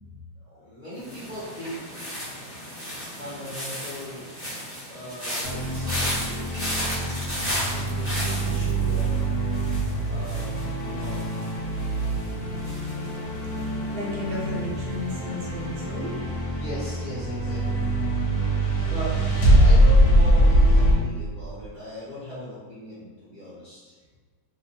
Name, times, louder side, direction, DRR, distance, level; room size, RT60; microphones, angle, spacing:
voice 1, 0.4-1.8 3.1-4.3 4.9-6.7 7.6-9.3 10.0-11.3 16.5-17.9 18.8-23.9, left 1 dB, 55° left, -12 dB, 0.5 m, -39 dB
sound 1, 1.0-14.0 14.3-14.7, equal, 15° right, 0.5 m, -35 dB
sound 2, 5.4-20.9, right 1 dB, 70° left, 1.1 m, -23 dB
voice 2, 13.6-16.2, left 1 dB, 75° right, -3 dB, 1.1 m, -34 dB
2.9 x 2.2 x 2.7 m, 1.5 s
omnidirectional pair, 1.8 m